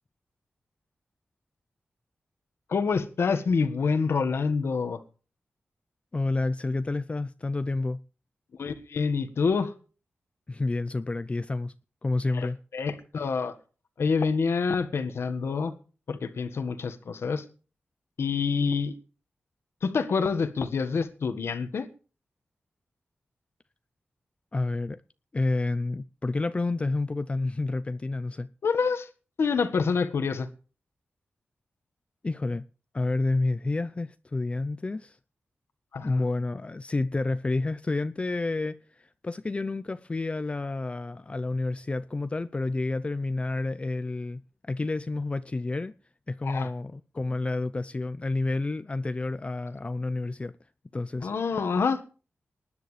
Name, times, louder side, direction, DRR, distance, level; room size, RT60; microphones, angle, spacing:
voice 1, 2.7-5.0 8.5-9.7 12.3-12.5 12.7-13.5 14.0-15.7 16.1-17.4 18.2-18.9 19.8-21.9 28.6-29.1 29.4-30.5 35.9-36.2 46.4-46.7 51.2-52.0, left 5 dB, 75° left, 1.5 m, -27 dB
voice 2, 6.1-8.0 10.5-11.7 12.0-12.6 24.5-25.0 25.3-28.5 32.2-32.6 32.9-35.2 36.0-44.4 44.7-45.9 46.3-50.5 50.9-51.3, left 2 dB, 30° left, 0.6 m, -29 dB
20.0 x 10.5 x 3.3 m
wide cardioid pair, 100°, 4 cm